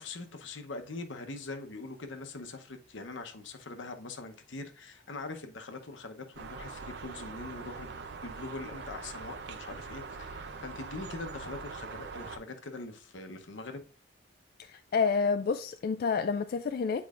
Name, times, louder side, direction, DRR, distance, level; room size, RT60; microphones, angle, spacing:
voice 1, 0.0-13.8, left 3 dB, 80° left, 0.8 m, -42 dB
sound 1, 6.3-12.4, right 4 dB, 60° right, 0.6 m, -43 dB
voice 2, 14.9-17.1, left 5 dB, 50° left, 0.3 m, -28 dB
8.5 x 4.6 x 2.4 m
head